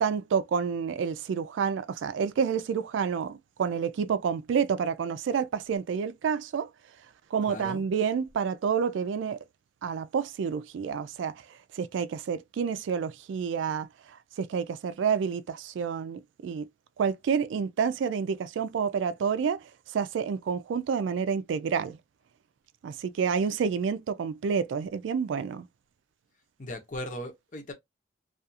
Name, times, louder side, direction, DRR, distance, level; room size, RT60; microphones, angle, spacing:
voice 1, 0.0-6.7 7.3-9.4 9.8-11.3 11.7-13.9 14.4-16.7 17.0-22.0 22.8-25.7, right 6 dB, 80° right, 0.3 m, -29 dB
voice 2, 7.5-7.8 26.6-27.7, left 1 dB, 40° left, 0.7 m, -38 dB
2.3 x 2.3 x 2.7 m
head